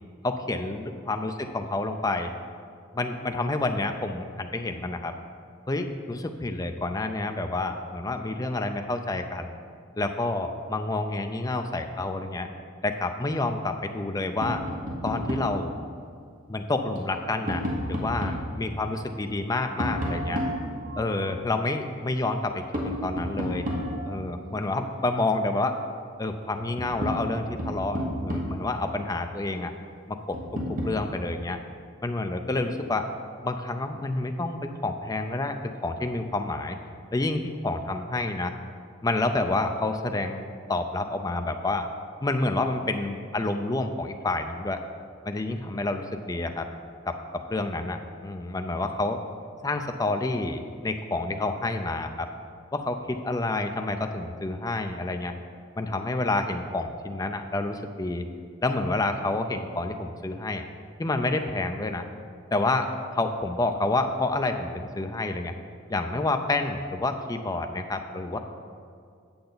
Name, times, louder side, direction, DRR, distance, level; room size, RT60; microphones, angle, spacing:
voice 1, 0.2-2.3 2.9-5.1 5.7-9.5 10.0-12.5 12.8-14.6 15.0-15.8 16.5-20.4 21.0-23.7 24.1-25.8 26.2-29.7 30.1-30.4 30.8-31.6 32.0-33.1 33.4-35.6 35.8-36.8 37.1-38.5 39.0-41.9 42.2-44.8 45.2-46.7 47.1-49.2 49.6-52.3 52.7-55.3 55.8-58.2 58.6-60.7 61.0-62.1 62.5-65.5 65.9-68.4, left 2 dB, 20° left, 6 dB, 0.4 m, -29 dB
Tap, 14.4-15.6 17.0-18.5 19.8-21.2 22.7-24.3 26.1-26.2 26.6-28.7 30.3-31.0, equal, 40° right, 1.2 m, -31 dB
8.6 x 7.9 x 4.0 m, 2.3 s
head